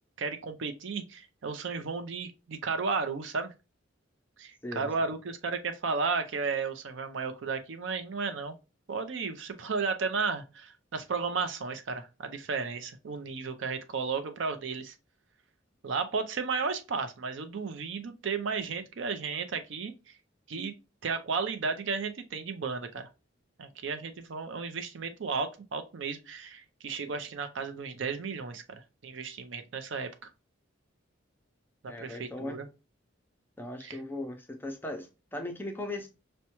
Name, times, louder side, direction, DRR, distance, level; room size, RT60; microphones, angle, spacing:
voice 1, 0.2-3.5 4.4-8.6 8.9-14.9 15.8-19.9 20.5-20.7 21.0-23.1 23.6-28.6 29.0-30.1 31.8-32.7 33.8-34.0, right 4 dB, 65° right, 0.5 m, -33 dB
voice 2, 31.9-32.6 33.6-36.1, left 1 dB, 10° left, 0.5 m, -38 dB
5.5 x 2.1 x 2.9 m
head